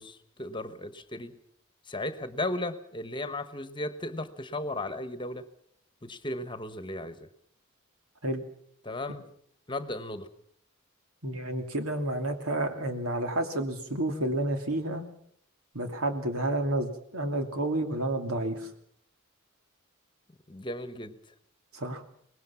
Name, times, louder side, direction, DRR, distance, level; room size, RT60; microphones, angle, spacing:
voice 1, 0.0-1.4 1.9-5.5 6.0-7.3 8.8-9.2 9.7-10.3 20.5-21.2, left 1 dB, 20° left, 11 dB, 1.2 m, -35 dB
voice 2, 11.2-15.0 15.7-18.7 21.7-22.0, right 1 dB, 85° right, 5 dB, 2.8 m, -30 dB
24.0 x 20.0 x 5.9 m, 0.66 s
head